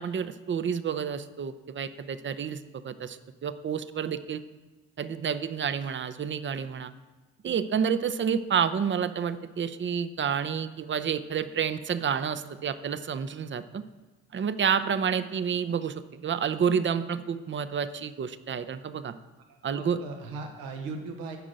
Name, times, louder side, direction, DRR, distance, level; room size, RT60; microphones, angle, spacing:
voice 1, 0.0-4.4 5.0-6.9 7.4-13.8 14.3-19.1 19.6-20.0, right 7 dB, 35° right, 12 dB, 0.6 m, -29 dB
voice 2, 19.5-21.4, right 3 dB, 85° right, 4 dB, 1.1 m, -38 dB
8.1 x 5.1 x 7.6 m, 1.3 s
supercardioid pair, 60°, 34 cm